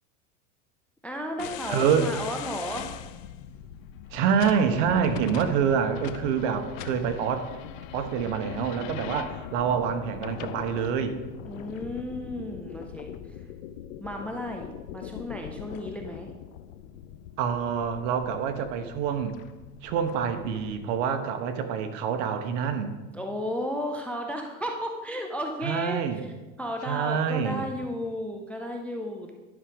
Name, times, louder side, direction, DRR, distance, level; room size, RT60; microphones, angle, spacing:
voice 1, 1.0-3.0 11.5-13.4 14.0-16.3 23.1-26.3 26.6-29.3, equal, 5° left, 3 dB, 0.4 m, -34 dB
sound 1, 1.4-21.1, left 11 dB, 70° left, 0.7 m, -41 dB
voice 2, 1.7-2.1 4.1-7.4 7.8-11.1 17.4-19.3 19.8-22.9 25.6-26.2 26.9-27.7, right 7 dB, 65° right, 8 dB, 1.2 m, -26 dB
11.0 x 6.1 x 5.2 m, 1.2 s
supercardioid pair, 145°, 40 cm